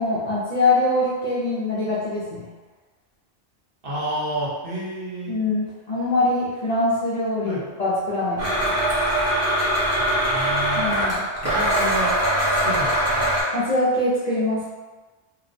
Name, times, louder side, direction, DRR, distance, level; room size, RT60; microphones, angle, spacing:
voice 1, 0.0-2.5 5.3-8.8 10.7-11.3 13.5-14.7, left 2 dB, 50° left, -9 dB, 0.5 m, -23 dB
voice 2, 3.8-5.4 7.4-7.6 10.0-10.9 11.4-12.2 12.6-13.2, right 1 dB, 55° right, -8 dB, 1.0 m, -30 dB
Domestic sounds home sounds, 8.4-13.4, right 1 dB, 20° right, 0.5 m, -22 dB
2.9 x 2.1 x 2.5 m, 1.3 s
omnidirectional pair, 1.2 m